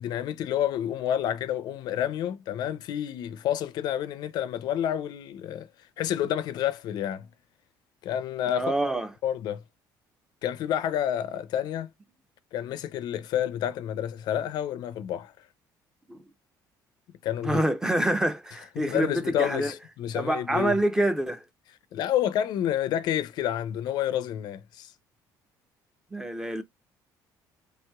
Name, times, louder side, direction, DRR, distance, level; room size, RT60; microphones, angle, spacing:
voice 1, 0.0-5.7 6.0-7.3 8.0-8.7 9.2-9.6 10.4-11.9 12.5-15.3 17.2-17.6 18.8-20.8 21.9-24.9, left 10 dB, 65° left, 0.4 m, -29 dB
voice 2, 8.5-9.1 16.1-16.2 17.4-19.7 20.1-21.4 26.1-26.6, right 1 dB, 10° right, 0.5 m, -26 dB
3.2 x 2.9 x 2.2 m
cardioid pair, 140°, 8 cm